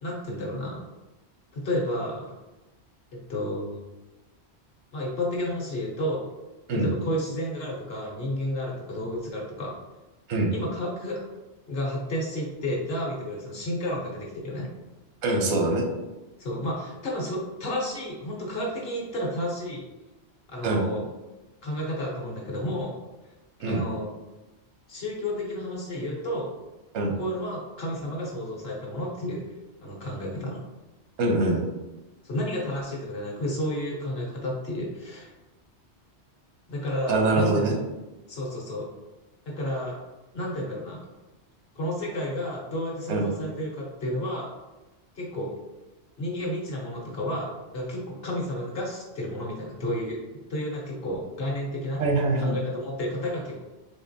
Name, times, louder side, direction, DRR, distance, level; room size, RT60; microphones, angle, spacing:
voice 1, 0.0-0.8 1.5-2.3 3.1-3.8 4.9-6.3 6.7-9.7 10.5-11.2 11.7-14.7 16.4-19.9 20.5-21.0 21.6-22.9 23.6-24.1 24.9-26.5 27.1-29.4 29.8-30.6 32.2-35.3 36.7-37.6 38.3-38.9 39.6-40.0 40.3-41.0 41.7-44.5 45.1-45.5 46.2-50.2 50.5-52.0 52.4-53.6, left 1 dB, 65° left, -3 dB, 1.3 m, -31 dB
voice 2, 15.2-15.8 20.6-20.9 23.6-23.8 26.9-27.1 31.2-31.6 37.1-37.8 43.1-43.3 52.0-52.5, right 2 dB, 90° right, 2 dB, 1.1 m, -24 dB
4.2 x 3.2 x 2.7 m, 1.1 s
omnidirectional pair, 1.1 m